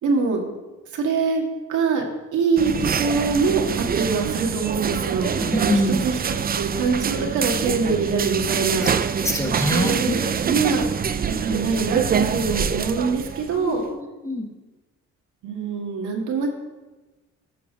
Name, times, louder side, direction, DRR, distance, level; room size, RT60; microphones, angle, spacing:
voice 1, 0.0-0.4 0.9-1.4 1.7-2.0 2.3-3.6 3.9-8.9 9.7-10.1 10.4-10.8 11.2-13.8 15.4-16.5, right 4 dB, 80° right, 1 dB, 1.8 m, -24 dB
sound 1, 2.6-13.7, right 7 dB, 30° right, 0.5 m, -25 dB
voice 2, 5.4-6.0 6.5-6.6 9.2-10.2 13.6-14.4, equal, 10° left, 2 dB, 1.5 m, -25 dB
13.5 x 4.9 x 5.2 m, 1.2 s
cardioid pair, 90°, 30 cm